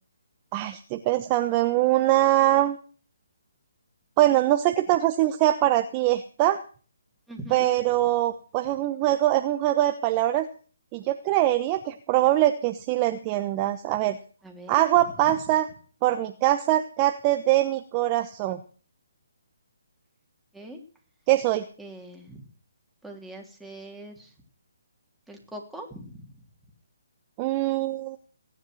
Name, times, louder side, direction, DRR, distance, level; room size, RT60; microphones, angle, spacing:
voice 1, 0.5-2.8 4.2-6.6 7.5-10.5 10.9-14.2 14.7-15.7 16.0-18.6 21.3-21.7 27.4-28.2, right 14 dB, 25° right, 8 dB, 1.0 m, -23 dB
voice 2, 7.3-7.7 14.4-14.8 20.5-20.8 21.8-22.4 23.0-24.3 25.3-26.1, right 1 dB, ahead, 0 dB, 3.4 m, -42 dB
17.5 x 10.5 x 6.4 m, 0.41 s
figure-of-eight pair, 145°, 0 cm